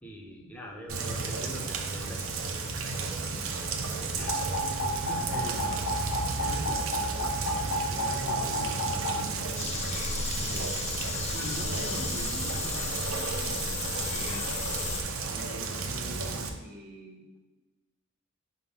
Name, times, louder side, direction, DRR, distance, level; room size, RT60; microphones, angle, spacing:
voice 1, 0.0-2.3 2.7-5.4, equal, 5° left, 0 dB, 0.8 m, -45 dB
Rain, 0.9-16.5, right 4 dB, 65° right, 0.7 m, -33 dB
sound 1, 4.2-9.2, equal, 70° left, 0.8 m, -32 dB
voice 2, 5.3-5.9 6.4-10.7 11.3-14.5 15.3-17.3, right 1 dB, 45° right, -1 dB, 1.2 m, -43 dB
sound 2, 9.5-15.0, left 4 dB, 30° left, 0.5 m, -34 dB
4.6 x 3.7 x 5.6 m, 1.1 s
head